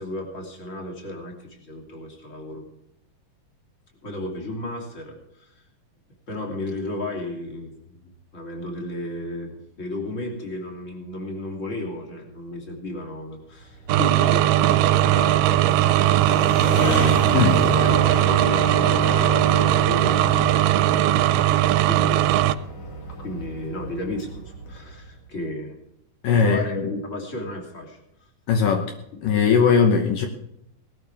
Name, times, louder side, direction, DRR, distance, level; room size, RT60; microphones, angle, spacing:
voice 1, 0.0-2.7 4.0-5.6 6.3-7.7 8.0-16.5 17.6-22.3 23.2-25.8 26.4-28.3 29.1-29.2, left 1 dB, 20° left, 1 dB, 2.8 m, -34 dB
sound 1, 13.6-25.2, left 1 dB, 45° left, 3.1 m, -31 dB
sound 2, 13.9-22.6, right 14 dB, 80° right, 2.4 m, -19 dB
voice 2, 26.2-26.6 28.5-28.9 29.2-30.3, left 6 dB, 70° left, 4 dB, 2.5 m, -19 dB
19.5 x 13.0 x 3.5 m, 0.81 s
omnidirectional pair, 4.4 m